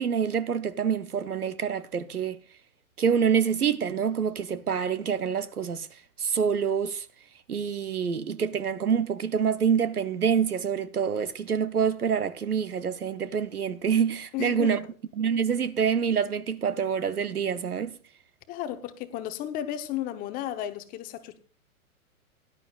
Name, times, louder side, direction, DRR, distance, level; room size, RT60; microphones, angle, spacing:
voice 1, 0.0-2.4 3.0-5.9 6.2-7.1 7.5-14.9 15.2-18.0, right 7 dB, 85° right, 0.9 m, -26 dB
voice 2, 14.3-14.8 18.5-21.4, left 12 dB, 20° left, 0.8 m, -33 dB
17.0 x 11.0 x 2.3 m
figure-of-eight pair, 120°, 44 cm